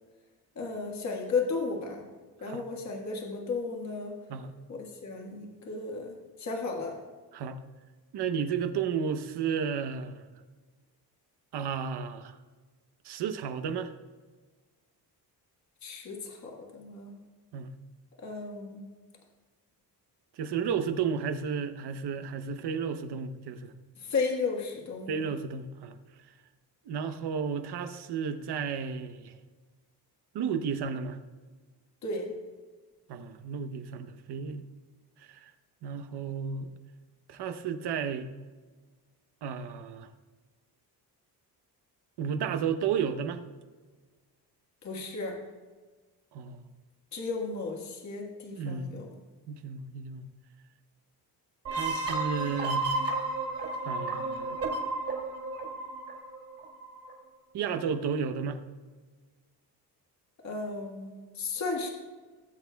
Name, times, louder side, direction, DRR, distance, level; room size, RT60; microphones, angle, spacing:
voice 1, 0.5-2.0 2.4-4.2 4.7-7.0 15.8-17.1 18.2-18.8 24.0-25.2 32.0-32.3 44.8-45.4 47.1-49.1 60.4-61.9, left 4 dB, 45° left, 1 dB, 1.5 m, -34 dB
voice 2, 8.1-10.2 11.5-12.4 13.0-13.9 17.5-17.7 20.4-23.7 25.1-26.0 26.9-29.3 30.3-31.2 33.1-34.7 35.3-35.5 35.8-36.7 37.3-38.3 39.4-40.1 42.2-43.4 46.3-46.7 48.5-49.0 49.5-50.3 51.7-52.9 53.8-54.6 57.5-58.6, right 6 dB, 80° right, 8 dB, 0.9 m, -33 dB
sound 1, 51.6-57.1, right 2 dB, 35° right, 2.4 m, -32 dB
18.0 x 8.3 x 2.3 m, 1.4 s
wide cardioid pair, 160°, 39 cm